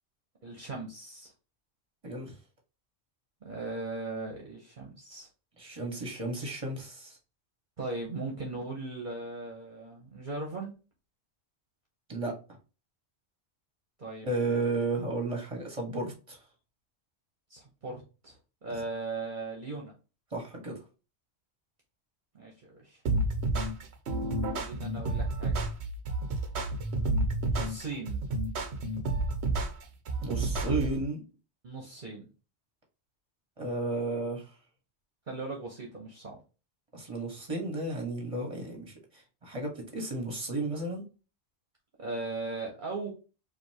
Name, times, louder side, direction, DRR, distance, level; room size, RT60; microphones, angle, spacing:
voice 1, 0.4-1.3 3.4-5.3 7.8-10.8 14.0-14.6 17.5-18.4 18.6-19.9 22.3-23.0 24.5-25.5 27.5-28.2 31.6-32.3 35.3-36.4 42.0-43.1, right 3 dB, 50° right, -1 dB, 1.3 m, -38 dB
voice 2, 2.0-2.3 5.6-7.2 12.1-12.4 14.2-16.4 20.3-20.8 30.2-31.2 33.6-34.5 36.9-41.0, right 2 dB, 30° right, 2 dB, 1.6 m, -33 dB
sound 1, 23.1-31.0, right 2 dB, 85° right, 1.1 m, -30 dB
5.1 x 2.8 x 2.9 m, 0.32 s
omnidirectional pair, 1.1 m